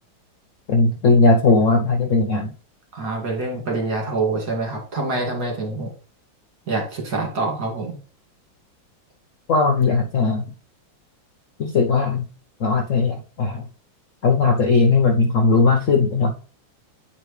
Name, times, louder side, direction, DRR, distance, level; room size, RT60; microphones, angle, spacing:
voice 1, 0.7-2.5 9.5-10.5 11.6-12.3 12.6-13.6 14.2-16.3, left 4 dB, 60° left, 2 dB, 0.8 m, -18 dB
voice 2, 2.9-5.9 6.7-8.0, right 3 dB, 55° right, 0 dB, 2.7 m, -26 dB
8.3 x 4.9 x 3.2 m, 0.38 s
omnidirectional pair, 2.1 m